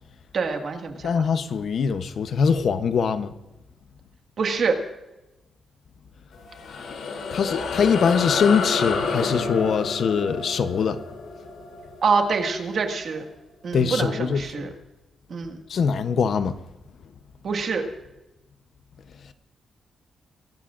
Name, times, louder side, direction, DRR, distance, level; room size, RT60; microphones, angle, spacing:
voice 1, 0.3-1.1 4.4-4.8 12.0-13.2 13.6-14.7 15.3-15.6 17.4-17.8, right 4 dB, 50° right, 1.8 m, -25 dB
voice 2, 1.0-3.3 7.3-11.0 13.7-14.7 15.7-16.5, left 6 dB, 55° left, 0.8 m, -22 dB
sound 1, 6.3-13.1, left 4 dB, 80° left, 2.9 m, -30 dB
23.5 x 17.0 x 2.5 m
wide cardioid pair, 155°, 0 cm